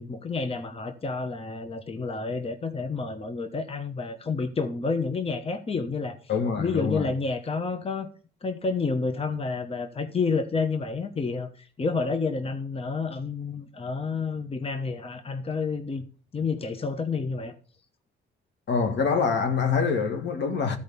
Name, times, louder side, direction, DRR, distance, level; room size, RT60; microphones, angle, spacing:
voice 1, 0.0-6.2 6.6-8.1 8.4-16.1 16.3-17.5, left 4 dB, 30° left, 1.1 m, -29 dB
voice 2, 6.3-7.1 18.7-20.8, left 5 dB, 65° left, 1.8 m, -25 dB
13.0 x 5.1 x 6.9 m
cardioid pair, 90°, 20 cm